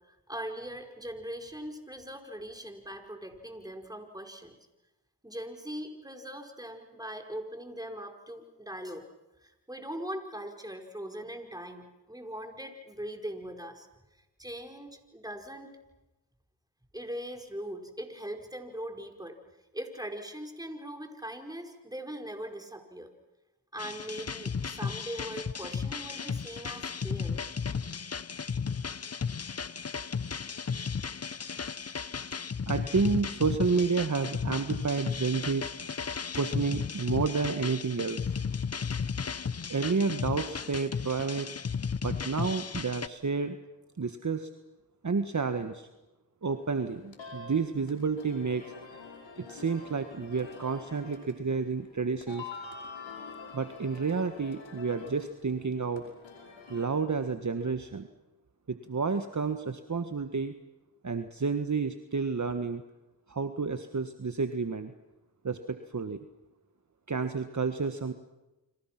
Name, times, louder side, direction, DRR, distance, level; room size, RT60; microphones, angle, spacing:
voice 1, 0.1-4.6 5.2-9.1 9.4-13.9 14.4-15.8 16.9-19.4 19.7-23.1 23.7-27.4, equal, 10° right, 5 dB, 4.9 m, -40 dB
sound 1, 23.8-43.1, left 6 dB, 35° left, 0.9 m, -34 dB
voice 2, 32.7-35.7 36.3-38.3 39.7-41.5 42.0-43.6 44.0-44.5 45.0-45.9 46.4-48.7 49.4-52.5 53.5-56.0 56.7-58.1 58.7-60.5 61.0-62.8 63.3-64.9 65.4-66.2 67.1-68.1, right 4 dB, 40° right, 8 dB, 1.6 m, -30 dB
sound 2, 46.4-56.9, left 4 dB, 85° left, 5.5 m, -47 dB
29.5 x 26.5 x 6.0 m, 1.0 s
cardioid pair, 40°, 45 cm